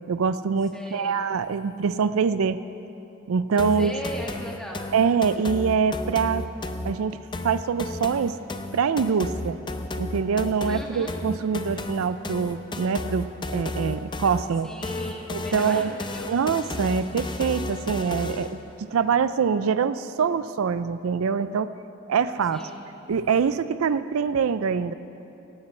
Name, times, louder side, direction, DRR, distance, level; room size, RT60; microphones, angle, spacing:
voice 1, 0.1-2.6 3.3-3.9 4.9-6.5 6.8-7.2 7.4-8.4 8.7-9.6 10.0-13.3 13.5-14.7 15.3-15.9 16.3-18.5 18.8-21.7 22.1-22.6 23.1-24.9, right 6 dB, 85° right, 14 dB, 0.4 m, -24 dB
voice 2, 0.7-1.3 3.8-4.8 10.6-11.2 14.6-16.3 22.5-22.8, equal, 5° left, -2 dB, 1.5 m, -38 dB
sound 1, 3.6-18.6, left 2 dB, 20° left, 0.5 m, -33 dB
17.0 x 15.5 x 3.3 m, 2.9 s
head